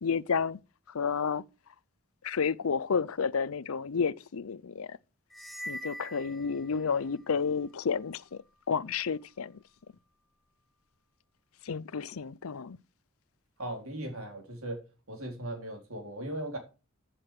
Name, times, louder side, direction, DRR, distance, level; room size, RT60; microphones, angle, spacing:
voice 1, 0.0-0.6 0.9-1.5 2.2-5.0 5.7-8.4 8.7-9.6 11.6-12.8, left 6 dB, 70° left, 0.6 m, -31 dB
sound 1, 5.3-7.2, equal, ahead, 1.1 m, -43 dB
voice 2, 13.6-14.8 15.1-16.6, right 1 dB, 75° right, 4.1 m, -38 dB
14.5 x 7.7 x 4.9 m
head